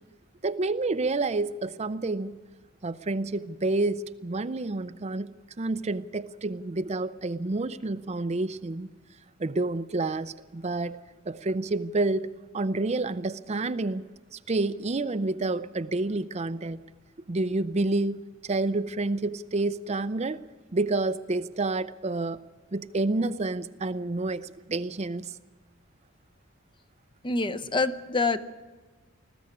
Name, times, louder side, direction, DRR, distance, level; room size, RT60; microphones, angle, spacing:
voice 1, 0.4-2.3 2.8-5.3 5.6-8.9 9.4-11.0 11.3-12.3 12.5-14.0 14.3-16.8 17.3-18.2 18.4-20.4 20.7-22.4 22.7-25.4, right 2 dB, 30° right, 12 dB, 0.5 m, -29 dB
voice 2, 27.2-28.5, left 3 dB, 25° left, 13 dB, 0.7 m, -26 dB
20.5 x 14.5 x 9.6 m, 1.4 s
head